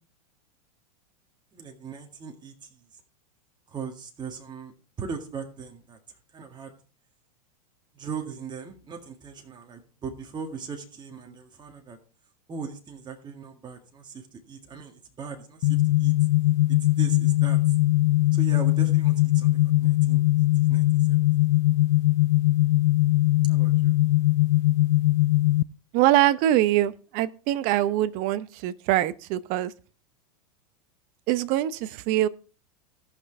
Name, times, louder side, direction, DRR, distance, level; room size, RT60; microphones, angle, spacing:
voice 1, 1.5-2.8 3.7-6.0 6.3-6.7 7.9-12.0 12.5-16.1 16.8-17.7 18.3-21.3 23.4-23.9, right 5 dB, 20° right, 1.8 m, -39 dB
sound 1, 15.6-25.6, left 17 dB, 55° left, 0.4 m, -21 dB
voice 2, 25.9-29.7 31.3-32.3, right 13 dB, 45° right, 0.8 m, -23 dB
18.0 x 6.0 x 3.3 m
hypercardioid pair, 115°, 20 cm